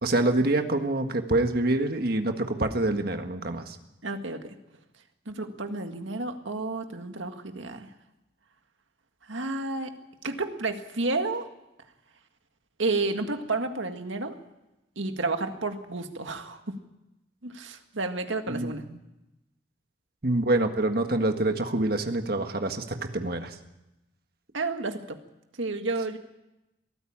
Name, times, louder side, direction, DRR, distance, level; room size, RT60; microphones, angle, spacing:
voice 1, 0.0-3.8 18.5-18.7 20.2-23.5, right 2 dB, 50° right, 6 dB, 1.7 m, -26 dB
voice 2, 4.0-4.5 5.3-7.9 9.3-9.9 10.2-11.5 12.8-14.4 15.0-16.7 17.4-18.9 24.5-25.2 25.6-26.2, right 3 dB, 80° right, 6 dB, 1.8 m, -31 dB
22.5 x 14.5 x 8.7 m, 0.95 s
head